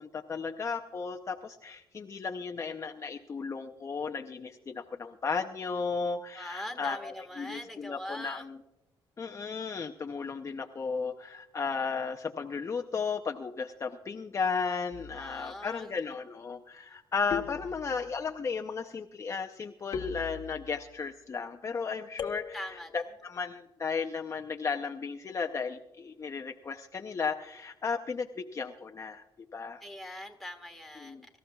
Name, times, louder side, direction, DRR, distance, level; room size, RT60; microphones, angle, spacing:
voice 1, 0.0-8.6 9.2-22.6 22.9-29.2 29.5-29.8 31.0-31.2, left 5 dB, 35° left, 4 dB, 0.7 m, -35 dB
voice 2, 6.3-8.5 15.1-16.0 22.5-22.9 29.8-31.4, left 1 dB, ahead, 2 dB, 1.7 m, -42 dB
sound 1, 14.9-15.5 17.3-18.2 19.9-20.9 22.2-22.9, left 7 dB, 65° left, 1.1 m, -39 dB
24.0 x 14.0 x 2.3 m, 0.90 s
cardioid pair, 115°, 9 cm